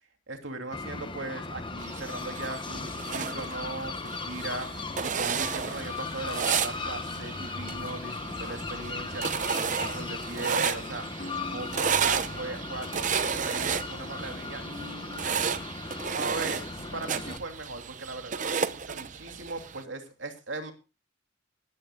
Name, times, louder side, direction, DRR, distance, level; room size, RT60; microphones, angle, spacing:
voice 1, 0.3-4.7 5.0-15.4 16.1-20.7, right 2 dB, 85° right, 4 dB, 2.8 m, -38 dB
sound 1, 0.7-17.4, left 3 dB, 25° left, 0.9 m, -37 dB
sound 2, 1.8-19.8, right 7 dB, 40° right, 0.7 m, -33 dB
Acoustic guitar, 11.2-15.3, left 1 dB, 55° left, 1.1 m, -48 dB
19.5 x 13.5 x 2.3 m, 0.29 s
head